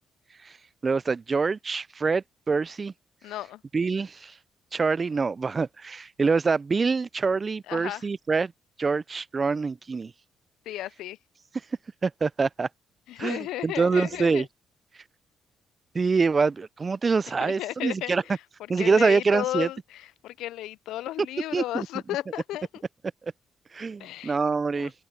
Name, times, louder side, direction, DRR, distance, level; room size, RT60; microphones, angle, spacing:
voice 1, 0.8-2.9 3.7-4.3 4.7-8.5 8.8-10.1 12.0-12.7 13.2-14.5 15.9-18.2 18.7-19.7 21.5-21.9 23.2-23.3 23.7-24.9, right 4 dB, 35° right, 0.3 m, -25 dB
voice 2, 3.2-3.6 7.7-8.1 10.7-11.2 13.1-14.5 17.4-18.4 18.8-22.8 24.0-24.4 24.8-24.9, left 15 dB, 90° left, 0.3 m, -34 dB
open air
cardioid pair, 90°, 0 cm